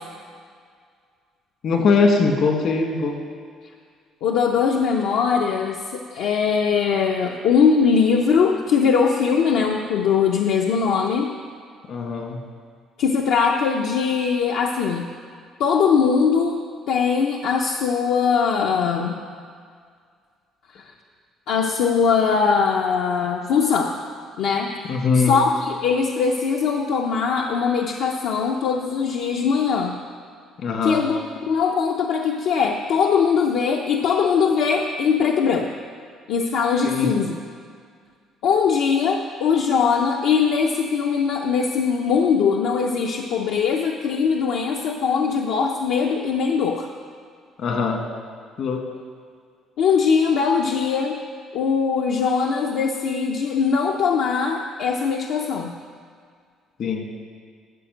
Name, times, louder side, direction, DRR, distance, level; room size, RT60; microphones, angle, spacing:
voice 1, 1.6-3.2 11.9-12.4 24.9-25.3 30.6-31.0 36.8-37.1 47.6-48.0 48.6-48.8 56.8-57.0, left 4 dB, 60° left, 3 dB, 1.6 m, -21 dB
voice 2, 4.2-11.3 13.0-15.1 15.6-16.6 16.9-19.2 20.7-20.8 21.5-24.0 24.4-24.7 25.1-30.0 30.8-31.2 31.5-35.7 36.3-37.4 38.4-46.9 49.8-51.2 51.5-55.8, left 6 dB, 80° left, 1 dB, 0.7 m, -21 dB
12.5 x 5.1 x 7.8 m, 2.1 s
cardioid pair, 120°, 0 cm